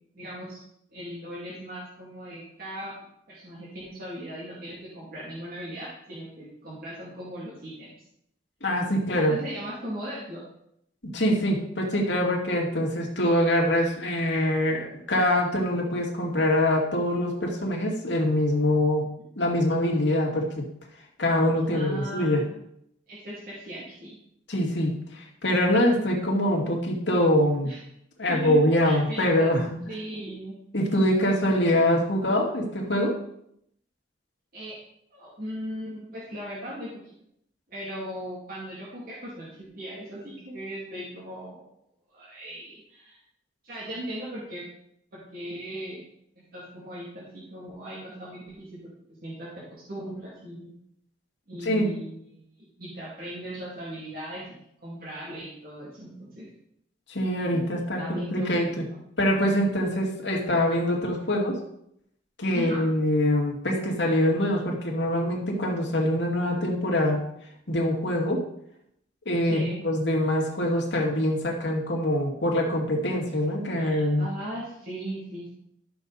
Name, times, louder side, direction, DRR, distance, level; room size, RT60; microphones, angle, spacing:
voice 1, 0.1-0.6 0.9-2.9 3.3-7.9 9.2-10.4 19.2-19.3 21.7-22.6 23.1-24.2 27.6-27.8 28.3-28.5 28.8-29.5 29.9-30.6 34.5-34.7 35.1-36.9 37.7-41.6 42.1-43.2 43.6-44.6 45.1-48.6 49.2-50.7 51.5-54.5 54.8-56.5 58.0-58.5 58.9-59.0 62.5-62.8 69.4-69.8 73.7-75.5, equal, 55° right, -7 dB, 2.6 m, -38 dB
voice 2, 8.6-9.3 11.0-19.1 19.4-20.6 21.2-22.4 24.5-27.7 28.2-29.8 30.7-33.1 51.6-51.9 57.1-58.8 59.2-61.6 62.4-67.2 67.7-68.4 69.3-74.3, left 1 dB, 80° left, -1 dB, 2.3 m, -24 dB
13.0 x 6.5 x 4.1 m, 0.73 s
head